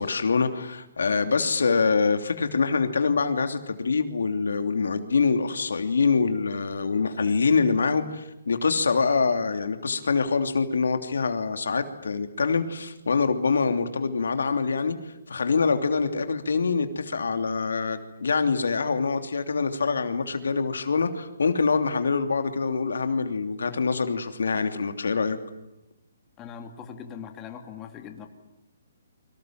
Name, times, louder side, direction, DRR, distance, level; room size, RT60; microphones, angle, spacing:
voice 1, 0.0-14.9 15.3-25.4, left 4 dB, 90° left, 7 dB, 2.9 m, -25 dB
voice 2, 26.4-28.3, left 7 dB, 20° left, 5 dB, 2.5 m, -40 dB
30.0 x 25.0 x 7.7 m, 0.87 s
hypercardioid pair, 160°, 0 cm